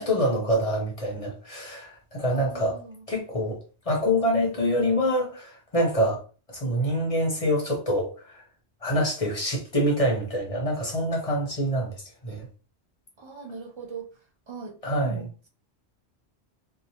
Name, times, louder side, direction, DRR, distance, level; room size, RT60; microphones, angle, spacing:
voice 1, 0.0-2.8 3.1-3.6 3.9-6.2 6.5-8.4 8.8-11.9 12.2-12.4 14.8-15.2, equal, 35° left, 0.7 m, -25 dB
voice 2, 2.3-3.0 13.2-14.1 14.5-15.5, right 5 dB, 40° right, 0.4 m, -40 dB
2.9 x 2.1 x 2.7 m
omnidirectional pair, 1.2 m